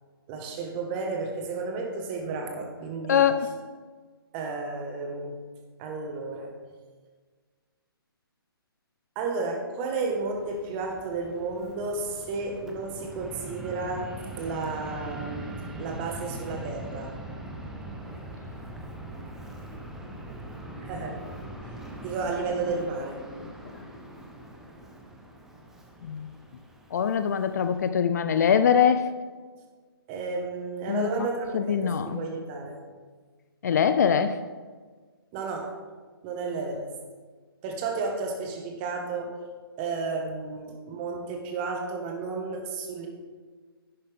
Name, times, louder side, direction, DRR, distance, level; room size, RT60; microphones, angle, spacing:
voice 1, 0.3-3.3 4.3-5.4 5.8-6.5 9.1-17.1 20.8-21.2 22.0-23.2 30.1-32.8 35.3-35.8 36.2-36.9 37.6-39.3 39.8-43.1, right 3 dB, 25° right, 2 dB, 1.6 m, -32 dB
Fixed-wing aircraft airplane, 10.1-27.9, right 1 dB, 5° right, 0.7 m, -41 dB
voice 2, 26.9-29.0 30.9-31.3 31.5-32.2 33.6-34.4, left 7 dB, 45° left, 11 dB, 0.5 m, -23 dB
11.0 x 9.3 x 3.6 m, 1.5 s
figure-of-eight pair, 140°, 13 cm